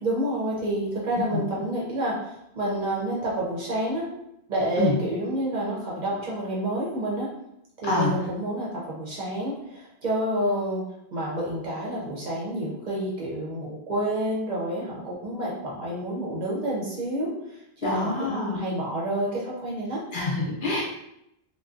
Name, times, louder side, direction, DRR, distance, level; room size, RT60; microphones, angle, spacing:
voice 1, 0.0-4.1 4.5-7.3 7.8-10.8 11.1-20.0, right 1 dB, 50° right, -5 dB, 0.7 m, -29 dB
voice 2, 17.8-18.6 20.1-20.8, left 3 dB, 60° left, -4 dB, 0.7 m, -26 dB
2.5 x 2.1 x 2.4 m, 0.81 s
omnidirectional pair, 1.1 m